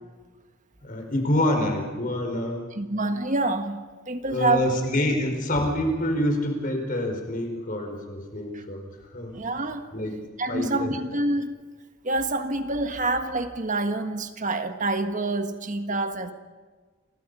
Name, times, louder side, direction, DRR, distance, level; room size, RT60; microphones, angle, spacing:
voice 1, 0.8-2.6 4.3-8.8 9.1-9.3 9.9-10.2 10.5-10.9, left 1 dB, 45° left, 3 dB, 4.9 m, -26 dB
voice 2, 2.7-4.7 8.5-8.6 9.3-9.9 10.4-11.5 12.0-16.3, right 2 dB, 40° right, 7 dB, 1.6 m, -27 dB
30.0 x 24.0 x 5.5 m, 1.4 s
head